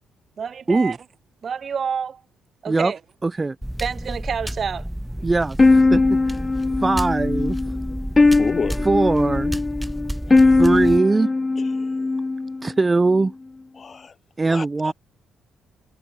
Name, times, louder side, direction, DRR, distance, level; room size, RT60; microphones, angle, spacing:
voice 1, 0.4-1.0 1.4-2.2 2.6-3.0 3.8-4.9, right 6 dB, 50° right, 1.3 m, -28 dB
voice 2, 3.2-3.6 5.2-6.4 6.8-7.6 8.8-9.6 10.6-11.3 12.6-13.3 14.4-14.9, right 3 dB, 25° right, 2.3 m, -21 dB
sound 1, 3.6-11.0, equal, 5° right, 0.9 m, -31 dB
sound 2, 5.6-12.7, left 3 dB, 20° left, 1.4 m, -19 dB
voice 3, 8.4-8.9 10.3-10.6 11.8-12.1 13.8-14.1 14.5-14.9, left 5 dB, 40° left, 3.9 m, -31 dB
cardioid pair, 90°, 0 cm